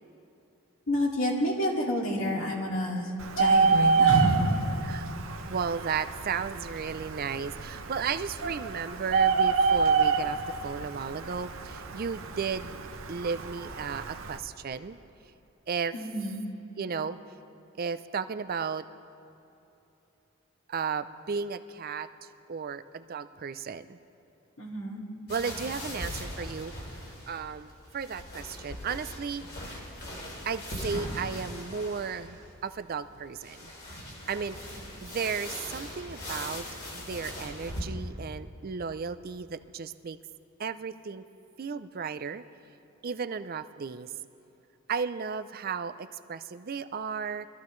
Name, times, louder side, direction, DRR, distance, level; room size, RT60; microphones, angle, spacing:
voice 1, 0.9-3.1 3.4-4.5 15.9-16.4 24.6-25.0, equal, 65° left, -2 dB, 2.5 m, -28 dB
Bird, 3.2-14.4, right 5 dB, 65° right, 0.8 m, -28 dB
voice 2, 5.5-10.4 10.6-12.7 13.1-15.0 15.7-15.9 16.8-17.2 17.8-18.8 20.7-22.1 22.5-24.0 25.3-26.9 27.3-29.4 29.7-29.8 30.4-33.7 34.3-34.6 35.0-36.7 36.9-40.2 40.6-41.3 41.6-42.4 43.0-44.1 44.9-47.5, right 6 dB, 40° right, 12 dB, 0.4 m, -34 dB
sound 1, 25.3-37.8, left 1 dB, 45° left, 3.0 m, -40 dB
24.0 x 14.0 x 3.2 m, 3.0 s
head